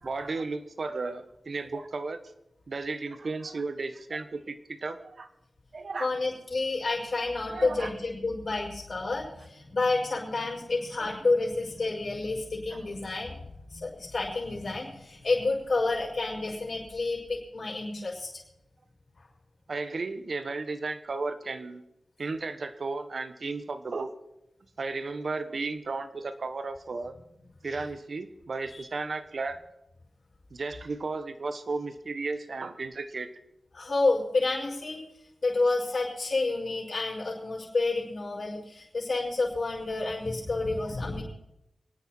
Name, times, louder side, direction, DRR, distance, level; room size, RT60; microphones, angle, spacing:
voice 1, 0.0-2.2 2.7-5.3 5.7-6.1 7.5-7.9 11.0-11.1 12.7-12.9 19.7-21.8 22.2-24.1 24.8-27.1 27.6-29.6 30.5-33.3, right 3 dB, 65° right, 10 dB, 1.3 m, -34 dB
voice 2, 6.0-13.4 13.7-18.3 19.2-19.3 28.7-28.8 33.7-35.0 35.4-41.2, left 3 dB, 60° left, -3 dB, 6.1 m, -29 dB
28.0 x 9.5 x 4.5 m, 0.86 s
cardioid pair, 40°, 0 cm